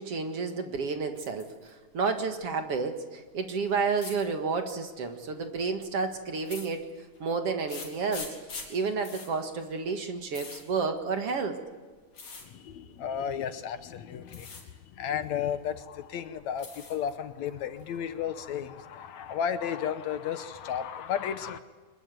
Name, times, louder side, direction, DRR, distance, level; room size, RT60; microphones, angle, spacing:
voice 1, 0.0-6.9 7.2-8.3 8.7-11.6, right 4 dB, 50° right, 6 dB, 2.5 m, -31 dB
sound 1, 1.2-1.7 2.0-2.7 4.0-4.2 5.2-5.5 6.4-7.2 7.7-11.5 12.1-12.5 13.4-13.8 14.2-14.7 15.0-15.8 16.2-17.1 17.5-18.2, left 4 dB, 55° left, 5.5 m, -44 dB
voice 2, 12.4-21.6, left 8 dB, 70° left, 11 dB, 2.1 m, -33 dB
24.5 x 21.5 x 9.2 m, 1.4 s
omnidirectional pair, 3.6 m